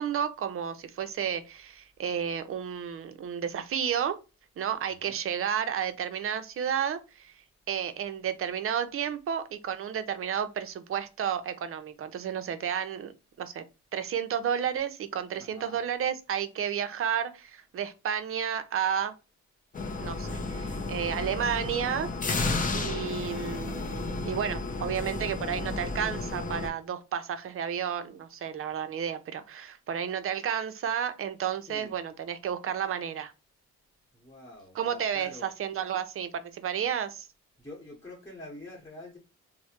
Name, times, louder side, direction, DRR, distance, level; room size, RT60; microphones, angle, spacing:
voice 1, 0.0-4.2 4.6-7.4 7.7-13.1 13.4-13.6 13.9-19.1 20.0-22.1 22.7-33.3 34.8-37.3, right 8 dB, 45° right, 0.5 m, -32 dB
voice 2, 4.8-5.2 15.3-15.8 31.6-31.9 34.1-35.5 37.6-39.2, left 1 dB, 10° left, 1.2 m, -46 dB
sound 1, 19.7-26.7, left 3 dB, 30° left, 0.5 m, -32 dB
3.0 x 2.1 x 2.8 m
cardioid pair, 90°, 30 cm